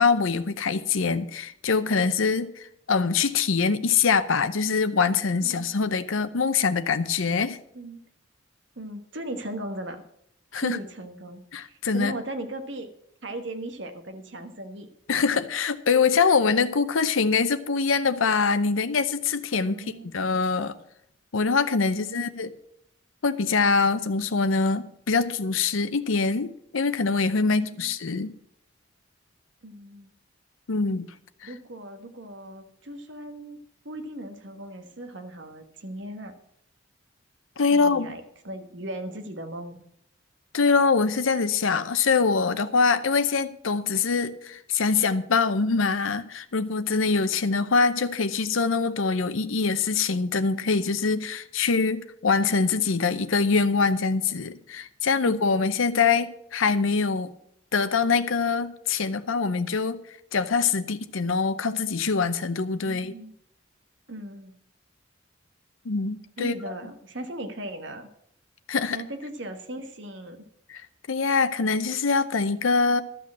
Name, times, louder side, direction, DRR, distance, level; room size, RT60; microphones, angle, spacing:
voice 1, 0.0-7.6 10.5-10.8 11.5-12.1 15.1-20.7 21.3-22.5 23.2-28.3 30.7-31.1 31.4-31.5 37.6-38.1 40.5-57.3 57.7-60.0 60.3-63.1 65.9-66.5 68.7-69.0 70.7-73.0, left 4 dB, 80° left, 0.7 m, -24 dB
voice 2, 7.7-8.1 8.8-10.0 10.6-12.9 13.2-14.9 19.6-20.1 21.9-22.4 27.4-28.0 29.6-30.1 31.4-33.6 33.8-36.3 37.7-39.8 55.2-55.5 62.8-63.3 64.1-64.5 66.4-68.1 68.9-70.4, right 1 dB, 65° right, 1.5 m, -38 dB
12.5 x 6.2 x 7.5 m
head